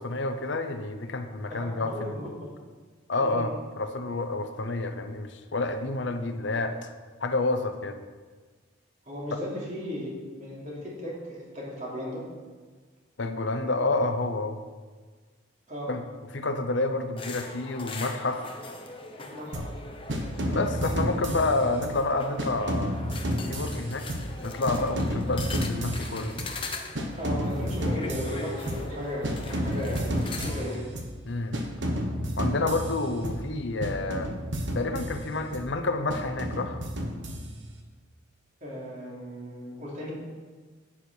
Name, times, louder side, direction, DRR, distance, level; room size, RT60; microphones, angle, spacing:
voice 1, 0.0-2.2 3.1-6.9 7.2-8.0 9.3-9.4 13.2-14.6 15.9-16.0 16.3-18.4 20.4-23.0 23.5-24.1 24.4-26.4 31.3-31.6 32.4-34.3 34.7-36.8, left 2 dB, 65° left, 7 dB, 0.8 m, -29 dB
voice 2, 1.4-2.5 3.2-3.5 9.1-12.2 15.7-15.9 19.2-19.7 27.2-30.8 38.6-40.1, left 1 dB, 35° right, -5 dB, 3.1 m, -36 dB
sound 1, 17.2-30.7, left 3 dB, 25° left, 0.9 m, -41 dB
sound 2, 19.5-19.8 20.1-22.0 22.4-24.4 24.7-26.6 26.9-29.0 29.2-31.2 31.5-33.5 33.8-35.7 36.1-37.8, equal, 65° right, 1.3 m, -31 dB
11.5 x 8.6 x 4.5 m, 1.4 s
head